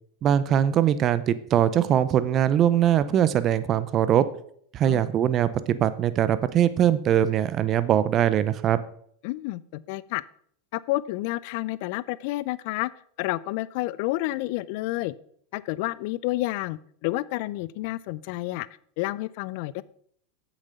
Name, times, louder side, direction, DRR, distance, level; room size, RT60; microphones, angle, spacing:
voice 1, 0.2-4.2 4.7-8.8, right 10 dB, 40° right, 14 dB, 0.7 m, -22 dB
voice 2, 9.2-10.2 10.7-12.9 13.2-15.1 15.5-18.7 19.0-19.8, left 18 dB, 60° left, 19 dB, 0.5 m, -30 dB
8.0 x 7.3 x 5.7 m, 0.64 s
hypercardioid pair, 95°, 0 cm